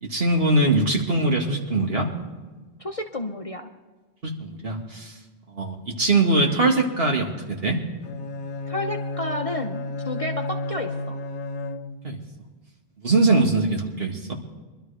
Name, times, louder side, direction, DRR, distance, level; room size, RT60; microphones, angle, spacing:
voice 1, 0.0-2.1 4.2-5.1 5.6-7.8 12.0-12.2 13.0-14.3, right 2 dB, 55° right, 1 dB, 2.1 m, -22 dB
voice 2, 2.8-3.7 8.7-11.2, left 1 dB, 35° left, 3 dB, 0.8 m, -31 dB
Bowed string instrument, 8.0-12.2, left 2 dB, 85° left, 1.1 m, -32 dB
23.5 x 12.5 x 3.4 m, 1.3 s
omnidirectional pair, 1.2 m